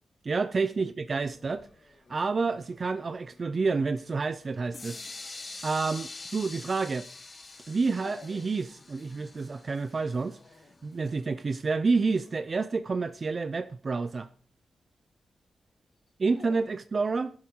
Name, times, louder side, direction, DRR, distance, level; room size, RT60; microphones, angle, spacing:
voice 1, 0.2-1.7 2.1-5.0 5.6-7.1 7.7-10.4 10.8-14.3 16.2-17.3, right 4 dB, 35° right, 0.7 m, -29 dB
Dog, 1.1-16.6, left 4 dB, 45° left, 2.4 m, -57 dB
sound 1, 4.7-10.6, left 3 dB, 25° left, 1.7 m, -44 dB
16.0 x 12.0 x 4.7 m
wide cardioid pair, 170°, 0 cm